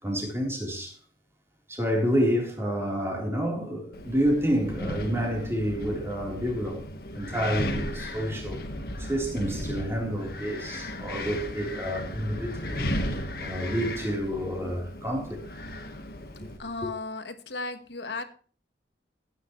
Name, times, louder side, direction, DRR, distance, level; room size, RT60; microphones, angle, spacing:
voice 1, 0.0-1.0 1.7-6.8 7.1-8.6 9.0-12.9 13.4-15.4 16.8-16.9, equal, 15° right, 3.8 m, -29 dB
Wind, 3.9-16.6, left 1 dB, 55° left, 1.5 m, -35 dB
voice 2, 16.6-18.2, left 3 dB, 70° left, 1.5 m, -35 dB
15.5 x 9.6 x 3.2 m
head